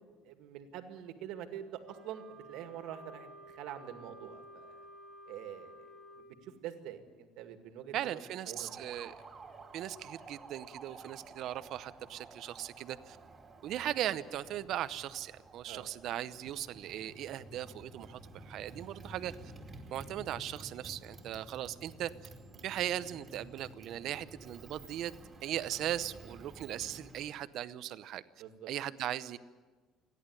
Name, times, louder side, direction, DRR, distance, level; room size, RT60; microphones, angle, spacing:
voice 1, 0.2-4.9 5.3-8.2 8.5-8.9 15.7-15.9 28.4-28.7, right 10 dB, 75° right, 7 dB, 2.0 m, -46 dB
Wind instrument woodwind instrument, 1.8-6.3, equal, ahead, 3.2 m, -53 dB
voice 2, 7.9-9.2 9.7-13.2 13.6-19.3 19.9-22.1 22.6-25.1 25.4-28.2 28.7-29.4, right 12 dB, 55° right, 15 dB, 0.7 m, -38 dB
Motorcycle, 8.4-27.4, right 2 dB, 20° right, 2.4 m, -52 dB
28.5 x 11.0 x 9.8 m, 1.4 s
cardioid pair, 155°, 0 cm